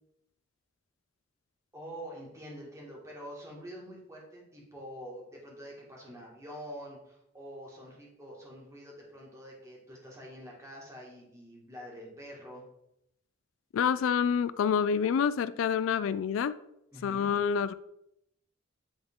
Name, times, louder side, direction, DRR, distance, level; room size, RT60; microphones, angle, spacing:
voice 1, 1.7-12.6 16.9-17.3, equal, 15° right, -3 dB, 1.8 m, -46 dB
voice 2, 13.7-16.6 17.0-17.7, left 7 dB, 75° left, 15 dB, 0.3 m, -27 dB
9.0 x 3.7 x 3.6 m, 0.81 s
head